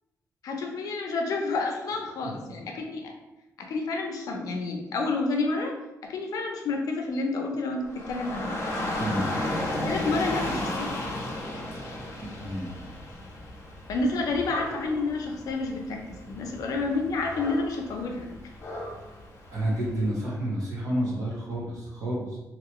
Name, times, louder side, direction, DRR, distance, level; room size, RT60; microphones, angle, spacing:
voice 1, 0.4-3.1 3.6-5.8 6.0-8.6 9.8-10.9 13.9-18.3, left 3 dB, 80° left, 2 dB, 0.6 m, -29 dB
Dog / Rain, 7.8-20.0, left 1 dB, 50° left, 0.8 m, -34 dB
voice 2, 9.0-9.3 12.2-12.7 19.5-22.4, right 1 dB, 70° right, -4 dB, 1.2 m, -30 dB
3.0 x 3.0 x 3.0 m, 0.97 s
wide cardioid pair, 150°, 6 cm